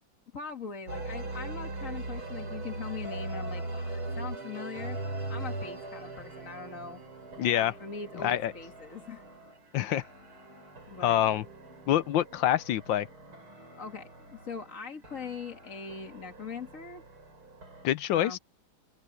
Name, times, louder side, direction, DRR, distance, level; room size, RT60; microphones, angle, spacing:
voice 1, 0.3-5.0 5.3-7.0 7.5-9.2 10.9-11.2 13.8-17.0 18.1-18.4, left 5 dB, 40° left, 2.1 m, -41 dB
sound 1, 0.9-17.8, right 2 dB, 80° right, 8.9 m, -41 dB
sound 2, 4.1-12.5, right 7 dB, 60° right, 3.1 m, -51 dB
voice 2, 7.4-7.7 8.1-8.5 9.7-10.0 11.0-11.4 11.9-13.1 17.8-18.4, left 12 dB, 75° left, 1.3 m, -26 dB
omnidirectional pair, 2.3 m